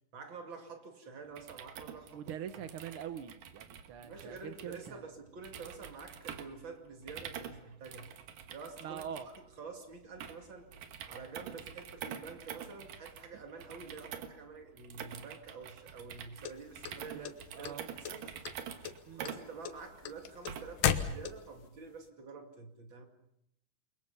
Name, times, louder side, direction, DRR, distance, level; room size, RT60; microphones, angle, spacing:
voice 1, 0.1-2.7 4.0-8.2 8.5-10.7 11.1-18.3 19.1-23.1, right 4 dB, 40° right, 2.8 m, -48 dB
sound 1, 1.3-20.9, right 8 dB, 85° right, 3.1 m, -47 dB
voice 2, 2.1-5.1 8.8-9.3 17.1-17.9 19.1-19.3, right 9 dB, 70° right, 1.3 m, -44 dB
sound 2, 16.4-17.7 18.0-18.6 18.8-21.7, left 9 dB, 85° left, 2.7 m, -33 dB
28.5 x 23.0 x 5.6 m
omnidirectional pair, 3.7 m